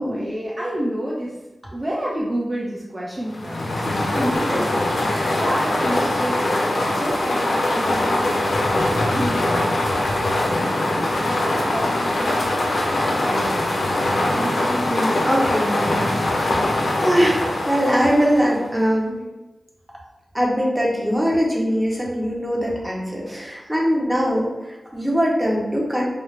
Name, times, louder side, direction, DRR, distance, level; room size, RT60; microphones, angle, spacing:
voice 1, 0.0-1.3 1.7-3.7 4.1-4.8 5.3-8.6 9.0-9.5 9.9-12.8 13.3-13.9 14.2-14.6 23.2-23.5, right 1 dB, 25° right, -5 dB, 0.5 m, -29 dB
sound 1, 3.3-18.7, left 1 dB, 85° left, 0.7 m, -22 dB
voice 2, 3.8-4.3 5.1-5.4 14.6-16.6 17.0-19.2 20.3-26.1, equal, 5° right, -3 dB, 0.9 m, -22 dB
4.9 x 2.0 x 3.2 m, 1.0 s
wide cardioid pair, 115°, 0 cm